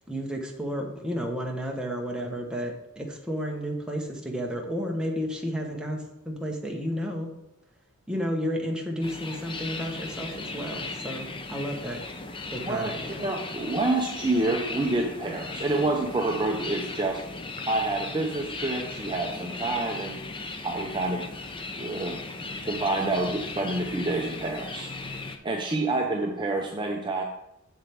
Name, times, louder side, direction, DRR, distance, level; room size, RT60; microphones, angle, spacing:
voice 1, 0.1-7.3 8.1-12.0 12.5-13.2, equal, 5° right, 0 dB, 1.1 m, -32 dB
sound 1, 9.0-25.4, left 3 dB, 20° left, 0.6 m, -37 dB
voice 2, 12.7-17.2 17.7-20.2 20.6-21.3 21.8-22.2 22.6-24.9 25.4-27.2, right 2 dB, 20° right, 0 dB, 0.6 m, -28 dB
7.3 x 7.1 x 3.5 m, 0.87 s
head